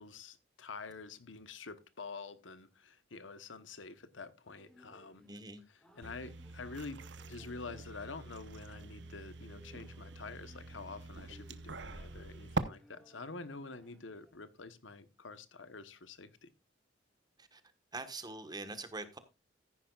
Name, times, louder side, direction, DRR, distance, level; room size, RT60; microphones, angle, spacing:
voice 1, 0.0-5.2 6.0-7.0 7.3-16.5, left 4 dB, 75° left, 1.2 m, -47 dB
sound 1, 4.5-14.3, left 1 dB, 5° left, 2.9 m, -63 dB
voice 2, 5.3-5.6 17.4-17.6 17.9-19.2, right 3 dB, 20° right, 1.4 m, -44 dB
sound 2, 6.0-12.6, right 3 dB, 65° right, 1.0 m, -44 dB
14.5 x 10.5 x 2.4 m
head